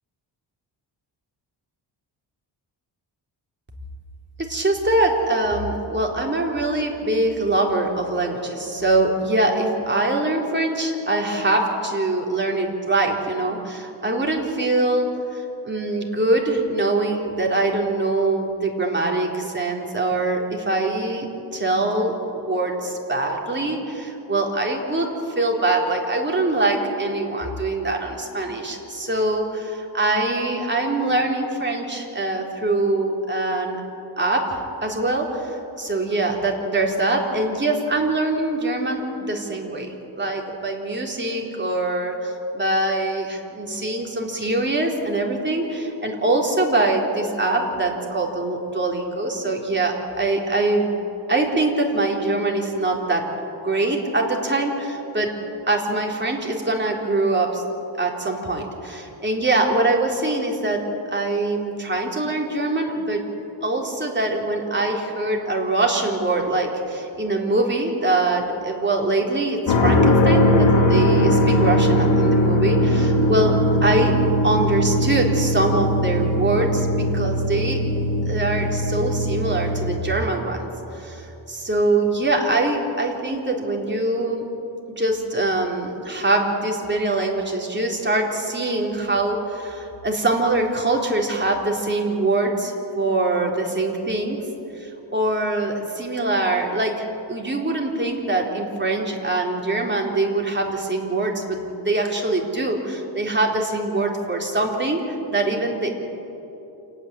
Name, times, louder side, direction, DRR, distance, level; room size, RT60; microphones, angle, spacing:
voice 1, 4.5-25.1 25.4-33.8 34.2-50.9 51.3-53.3 53.6-55.3 55.7-57.6 58.0-63.2 63.6-73.5 73.8-74.1 74.4-77.8 78.3-84.4 85.0-94.4 94.8-106.0, right 2 dB, 25° right, 0 dB, 3.9 m, -23 dB
sound 1, 69.7-80.0, equal, 70° left, 3.0 m, -19 dB
28.0 x 9.8 x 9.9 m, 3.0 s
cardioid pair, 70°, 46 cm